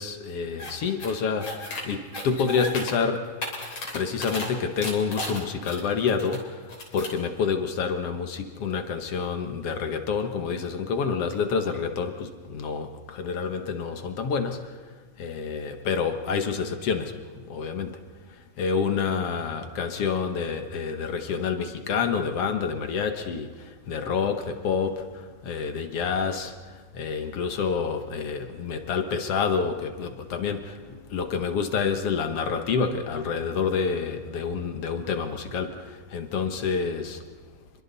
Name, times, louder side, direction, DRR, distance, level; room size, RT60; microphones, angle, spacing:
voice 1, 0.0-3.4 3.9-14.8 15.2-17.2 17.5-18.0 18.6-37.2, left 5 dB, 55° left, 7 dB, 2.2 m, -28 dB
sound 1, 0.6-0.7 1.0-1.8 2.1-2.9 3.2-4.5 4.8-6.4 6.7-7.2, left 1 dB, 40° left, 4.3 m, -34 dB
29.5 x 22.5 x 4.2 m, 1.5 s
omnidirectional pair, 3.4 m